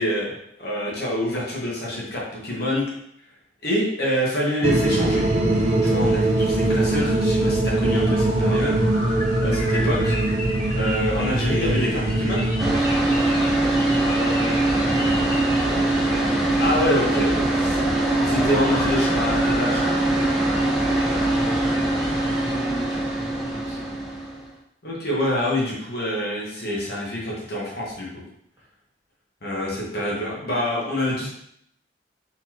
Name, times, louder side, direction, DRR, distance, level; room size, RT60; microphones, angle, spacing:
voice 1, 0.0-2.9 3.6-5.2 5.8-10.1 10.7-12.5 16.6-17.8 18.2-19.8 24.8-28.2 29.4-31.3, left 1 dB, 55° left, -4 dB, 1.3 m, -26 dB
sound 1, 4.6-12.8, right 2 dB, 35° right, 0.5 m, -22 dB
sound 2, 5.1-22.5, equal, 25° left, 1.2 m, -35 dB
sound 3, 12.6-24.5, right 2 dB, ahead, 1.0 m, -22 dB
voice 2, 14.1-16.6 21.2-23.9 30.0-30.3, equal, 20° right, -8 dB, 1.8 m, -38 dB
4.2 x 4.2 x 2.9 m, 0.71 s
head